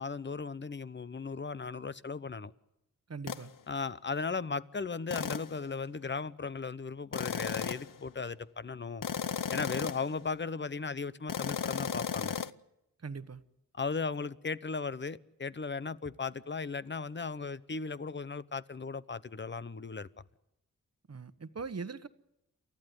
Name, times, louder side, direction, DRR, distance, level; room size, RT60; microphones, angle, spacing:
voice 1, 0.0-2.5 3.7-9.1 9.5-12.4 13.7-20.1, left 4 dB, 35° left, 0.9 m, -37 dB
voice 2, 3.1-3.5 13.0-13.4 21.1-22.1, right 4 dB, 45° right, 1.2 m, -41 dB
sound 1, 3.3-3.5 5.1-5.6 7.1-8.0 9.0-10.1 11.3-12.5, left 7 dB, 70° left, 0.8 m, -35 dB
28.5 x 14.5 x 9.7 m
wide cardioid pair, 65°, 33 cm